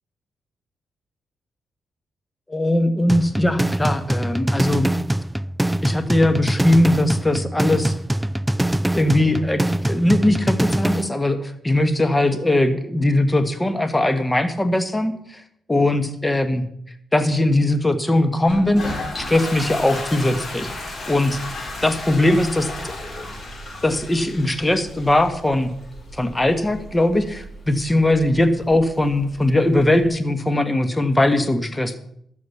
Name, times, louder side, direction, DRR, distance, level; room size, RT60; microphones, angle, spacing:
voice 1, 2.5-4.9 5.8-7.9 8.9-15.4 15.7-16.6 17.1-20.7 21.1-21.4 21.8-23.3 23.8-25.7 26.1-32.0, left 1 dB, 20° left, 10 dB, 1.6 m, -20 dB
sound 1, 3.1-11.1, right 1 dB, 10° right, 0.5 m, -23 dB
Toilet flush, 18.5-30.1, left 1 dB, 45° left, 5.1 m, -35 dB
12.5 x 7.4 x 7.1 m, 0.70 s
supercardioid pair, 55°, 0 cm